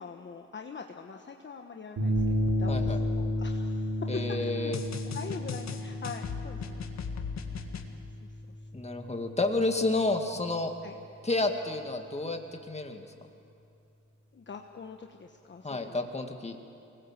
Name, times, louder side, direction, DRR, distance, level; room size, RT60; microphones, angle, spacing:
voice 1, 0.0-4.7 5.1-6.7 10.8-11.0 14.3-16.0, left 5 dB, 40° left, 3 dB, 1.3 m, -43 dB
sound 1, 2.0-10.4, equal, 80° right, 4.7 m, -33 dB
sound 2, 2.2-4.0 4.7-7.9, left 7 dB, 65° left, 1.9 m, -39 dB
voice 2, 2.7-3.0 4.1-4.8 8.7-10.7 11.2-12.4 12.7-13.1 15.6-16.6, left 2 dB, 20° left, 4 dB, 2.1 m, -30 dB
24.0 x 20.0 x 7.5 m, 2.6 s
cardioid pair, 85°, 29 cm